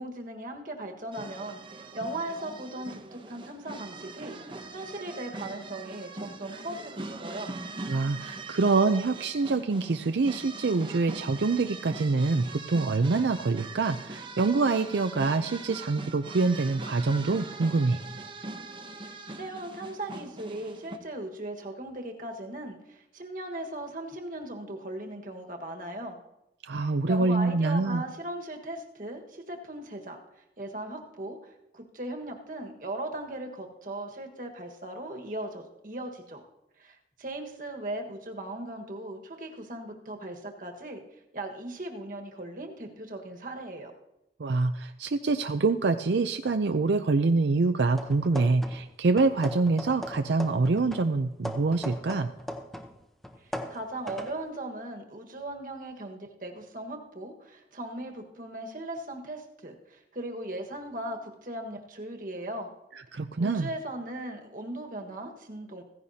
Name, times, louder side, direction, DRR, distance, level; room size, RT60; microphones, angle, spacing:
voice 1, 0.0-4.4 4.7-7.5 19.3-26.1 27.1-30.2 30.6-36.4 36.8-41.0 41.3-43.9 53.4-62.7 63.4-65.8, right 1 dB, 50° right, 2 dB, 1.5 m, -38 dB
sound 1, 1.1-21.0, right 3 dB, 30° right, 0.9 m, -42 dB
voice 2, 7.9-18.0 26.6-28.0 44.4-52.3 63.1-63.7, right 3 dB, 80° right, 8 dB, 0.5 m, -25 dB
sound 2, 47.9-48.9 49.2-52.9 53.2-54.4, equal, ahead, 0.8 m, -39 dB
15.5 x 15.5 x 2.8 m, 0.90 s
head